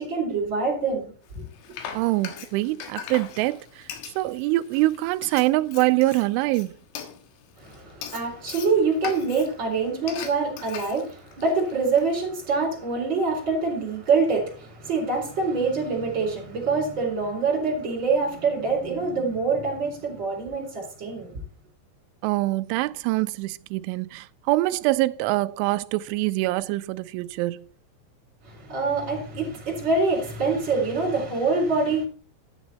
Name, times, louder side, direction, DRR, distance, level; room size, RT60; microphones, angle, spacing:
voice 1, 0.0-1.4 7.6-21.4 28.4-32.1, right 4 dB, 25° right, 4.3 m, -25 dB
Frying (food), 1.3-12.2, left 8 dB, 75° left, 3.6 m, -41 dB
voice 2, 1.9-3.8 4.2-6.8 22.2-27.7, right 19 dB, 85° right, 3.0 m, -24 dB
11.5 x 8.1 x 4.2 m
omnidirectional pair, 5.5 m